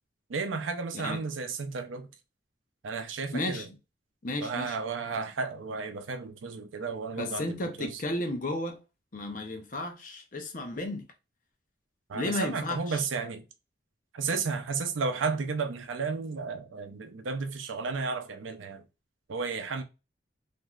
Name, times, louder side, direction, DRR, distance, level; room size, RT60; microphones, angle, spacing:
voice 1, 0.3-2.1 2.8-3.7 4.4-8.0 12.1-13.4 14.1-18.9 19.3-19.8, right 4 dB, 85° right, 0.5 m, -33 dB
voice 2, 3.3-3.7 4.2-4.8 7.2-8.8 9.1-11.1 12.1-13.0, left 2 dB, 45° left, 0.6 m, -33 dB
3.0 x 2.6 x 2.3 m
head